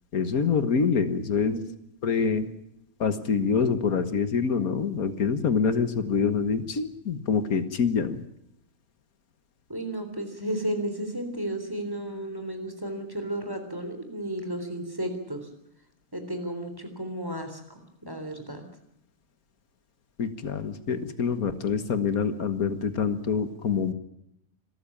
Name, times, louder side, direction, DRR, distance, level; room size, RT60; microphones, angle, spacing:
voice 1, 0.1-1.6 2.0-2.5 3.0-8.2 20.2-23.9, left 6 dB, 80° left, 11 dB, 1.9 m, -26 dB
voice 2, 9.7-15.5 16.1-18.7, right 1 dB, 15° right, 7 dB, 3.6 m, -33 dB
26.5 x 14.0 x 8.7 m, 0.79 s
omnidirectional pair, 1.5 m